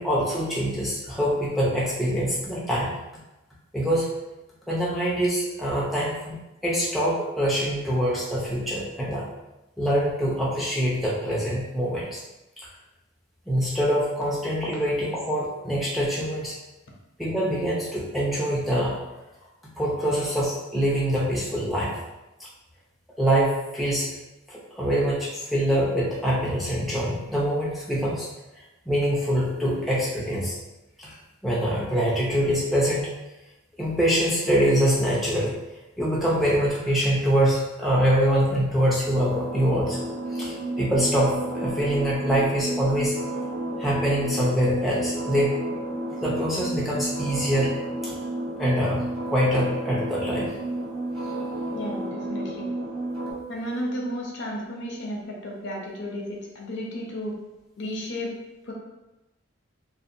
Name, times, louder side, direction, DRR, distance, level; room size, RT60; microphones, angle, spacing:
voice 1, 0.0-3.0 3.7-4.1 4.7-9.2 9.8-12.2 12.6-12.7 13.5-16.5 17.2-19.0 19.8-21.9 22.4-22.5 23.2-24.1 24.5-28.3 28.9-30.5 31.0-31.2 31.4-33.1 33.8-35.6 36.0-40.0 40.3-43.1 43.8-45.6 46.2-47.7 48.0-48.1 48.6-50.5, equal, ahead, -7 dB, 0.4 m, -24 dB
sound 1, 39.0-53.3, right 1 dB, 80° right, 1.0 m, -31 dB
voice 2, 51.7-52.7 53.5-57.3 57.8-58.3 58.6-58.7, equal, 55° left, -1 dB, 0.5 m, -33 dB
2.5 x 2.1 x 2.5 m, 0.99 s
head